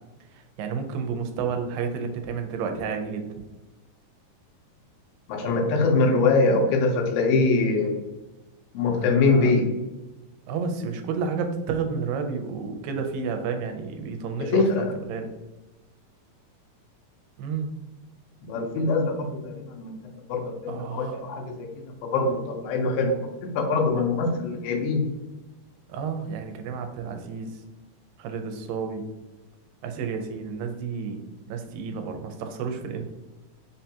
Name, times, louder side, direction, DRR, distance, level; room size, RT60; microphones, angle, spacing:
voice 1, 0.6-3.3 8.9-9.5 10.5-15.3 17.4-17.7 20.7-21.2 25.9-27.5 28.2-29.0 29.8-31.2 31.5-33.0, right 5 dB, 85° right, 5 dB, 2.3 m, -31 dB
voice 2, 5.3-7.9 8.7-9.7 14.5-14.9 18.4-19.9 20.3-21.7 22.1-25.1, left 3 dB, 90° left, 1 dB, 2.5 m, -23 dB
5.5 x 2.2 x 2.7 m, 1.1 s
omnidirectional pair, 4.0 m